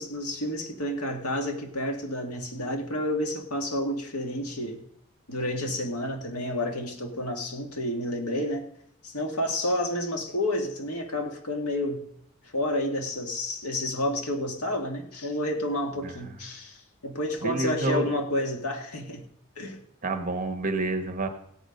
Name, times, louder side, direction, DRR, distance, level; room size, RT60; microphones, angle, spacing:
voice 1, 0.0-4.8 5.3-8.7 9.0-12.0 12.5-19.3 19.6-19.8, left 1 dB, 85° left, 3 dB, 1.9 m, -30 dB
voice 2, 16.0-16.4 17.4-18.1 20.0-21.3, right 2 dB, 35° right, 5 dB, 1.2 m, -29 dB
16.5 x 8.2 x 5.2 m, 0.71 s
head